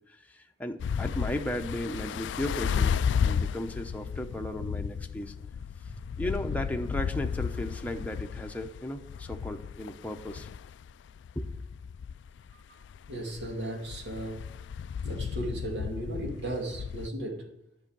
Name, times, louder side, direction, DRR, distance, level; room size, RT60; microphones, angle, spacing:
voice 1, 0.1-5.3 6.2-10.5 11.4-11.5, left 1 dB, 10° left, 3 dB, 0.8 m, -35 dB
sound 1, 0.8-17.1, left 7 dB, 90° left, 0.3 m, -33 dB
voice 2, 13.1-14.4 15.0-17.5, right 1 dB, 70° right, 1 dB, 2.7 m, -36 dB
11.0 x 6.2 x 8.9 m, 0.81 s
head